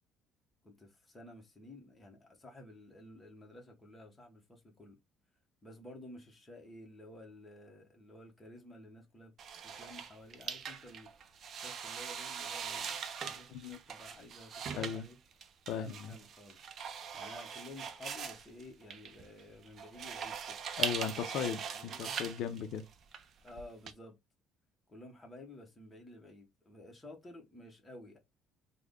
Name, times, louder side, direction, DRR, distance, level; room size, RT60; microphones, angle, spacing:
voice 1, 0.6-5.0 5.6-9.3 9.6-11.1 11.5-15.2 15.7-16.6 17.1-20.6 21.4-22.2 23.4-24.2 24.9-28.2, left 1 dB, 10° left, 1.0 m, -53 dB
sound 1, 9.4-23.9, right 7 dB, 40° right, 0.4 m, -41 dB
voice 2, 15.7-16.1 20.8-22.8, left 8 dB, 65° left, 0.5 m, -37 dB
3.4 x 2.1 x 3.5 m
cardioid pair, 155°, 0 cm